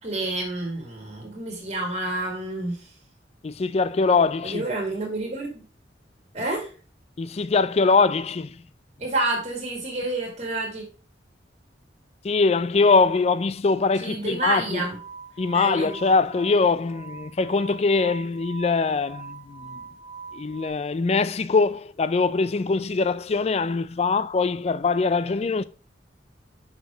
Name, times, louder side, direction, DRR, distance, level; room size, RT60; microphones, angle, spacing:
voice 1, 0.0-2.9 4.4-5.6 6.3-6.7 9.0-10.8 13.9-15.0 15.5-15.9, right 2 dB, 40° right, 2.5 m, -29 dB
voice 2, 3.4-4.6 7.2-8.6 12.2-14.8 15.4-19.7 20.3-25.6, left 4 dB, 35° left, 0.3 m, -22 dB
sound 1, 14.8-20.7, right 5 dB, 55° left, 2.0 m, -42 dB
6.5 x 5.0 x 5.0 m
head